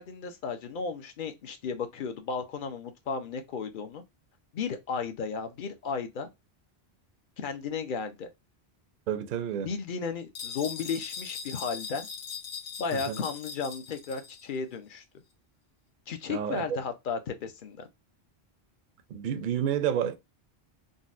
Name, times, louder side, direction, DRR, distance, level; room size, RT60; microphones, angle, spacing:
voice 1, 0.0-4.0 4.5-6.3 7.4-8.3 9.6-12.1 12.8-15.0 16.1-17.9, left 5 dB, 55° left, 0.8 m, -34 dB
voice 2, 9.1-9.7 12.9-13.2 16.3-16.8 19.1-20.2, right 9 dB, 60° right, 0.6 m, -30 dB
sound 1, 10.3-14.5, left 6 dB, 85° left, 1.1 m, -40 dB
3.9 x 2.2 x 2.5 m
omnidirectional pair, 1.1 m